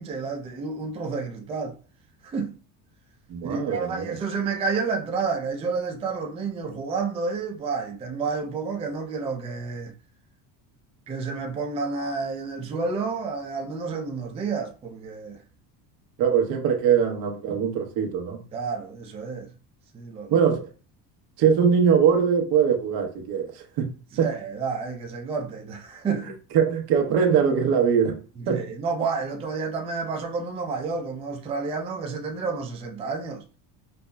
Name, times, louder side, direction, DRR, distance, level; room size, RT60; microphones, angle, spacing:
voice 1, 0.0-1.7 2.2-2.5 3.4-9.9 11.1-15.4 18.5-19.5 19.9-20.4 24.1-26.3 28.4-33.4, right 4 dB, 15° right, 0.3 m, -30 dB
voice 2, 3.3-4.2 16.2-18.4 20.3-20.7 21.4-23.9 24.2-24.3 26.2-28.2 28.5-28.6, right 7 dB, 70° right, 0.9 m, -22 dB
5.3 x 2.0 x 2.2 m
cardioid pair, 130°, 39 cm